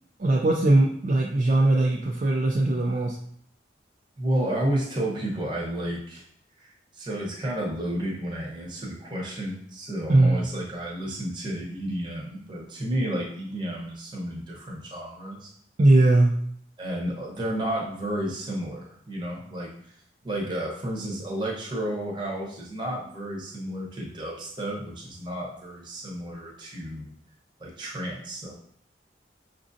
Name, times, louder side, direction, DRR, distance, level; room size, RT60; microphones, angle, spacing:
voice 1, 0.2-3.2 10.1-10.4 15.8-16.3, right 2 dB, 45° right, -1 dB, 0.4 m, -20 dB
voice 2, 4.2-6.3 6.6-15.5 16.8-19.9 20.2-27.1 27.6-28.5, right 1 dB, 25° right, -3 dB, 0.9 m, -31 dB
6.0 x 2.5 x 2.6 m, 0.64 s
head